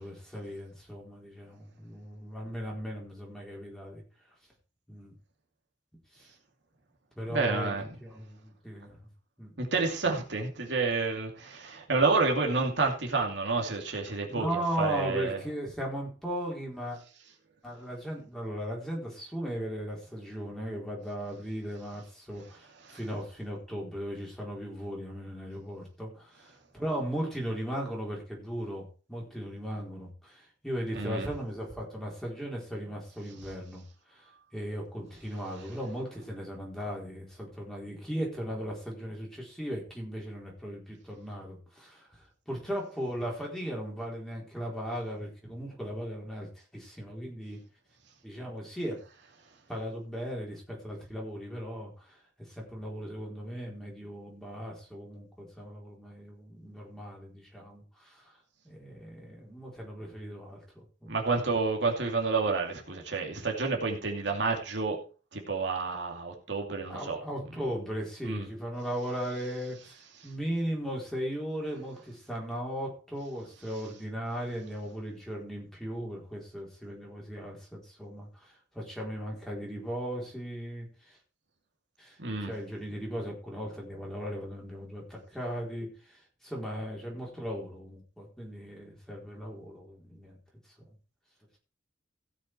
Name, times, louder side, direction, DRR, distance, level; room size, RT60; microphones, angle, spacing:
voice 1, 0.0-4.0 4.9-5.1 6.2-6.3 7.2-9.0 9.4-9.5 14.3-17.0 17.6-26.5 26.7-33.8 34.1-34.3 34.5-42.1 42.5-47.6 48.2-49.0 49.7-52.2 52.5-58.3 58.6-61.1 66.9-70.0 70.2-81.2 82.0-82.2 82.5-85.9 86.4-90.4, equal, 5° left, 4.2 m, -37 dB
voice 2, 7.3-7.9 9.6-15.4 22.8-23.0 30.9-31.3 33.4-33.5 35.6-35.7 61.1-65.0 65.3-67.2 68.3-68.5 70.1-70.3 82.2-82.5, right 4 dB, 70° right, 2.5 m, -29 dB
16.5 x 6.5 x 4.7 m
head